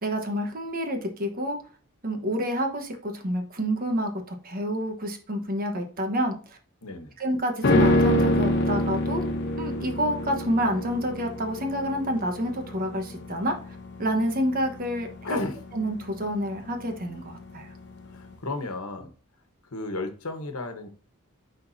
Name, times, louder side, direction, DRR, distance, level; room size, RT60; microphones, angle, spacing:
voice 1, 0.0-1.6 2.0-6.6 7.2-9.2 9.6-13.6 14.0-15.4 15.7-17.7, equal, 45° right, 1.2 m, -28 dB
voice 2, 6.8-7.2 15.2-15.6 18.1-19.1 19.7-20.9, left 2 dB, 90° left, 1.2 m, -33 dB
sound 1, 7.6-17.0 17.3-17.4, left 1 dB, 55° left, 0.9 m, -26 dB
9.6 x 3.9 x 2.7 m
head